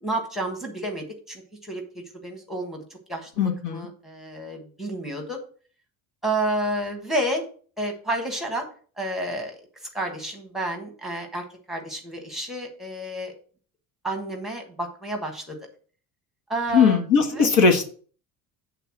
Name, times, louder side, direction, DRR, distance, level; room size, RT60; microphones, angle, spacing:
voice 1, 0.0-2.8 3.1-3.3 3.7-5.4 6.2-7.4 7.8-8.7 9.0-9.6 9.9-13.3 14.0-15.6 16.5-17.0 17.3-17.5, right 1 dB, ahead, 2 dB, 1.4 m, -30 dB
voice 2, 3.4-3.9 16.7-18.0, left 5 dB, 80° left, 5 dB, 1.7 m, -19 dB
8.1 x 3.8 x 5.9 m, 0.42 s
cardioid pair, 155°, 36 cm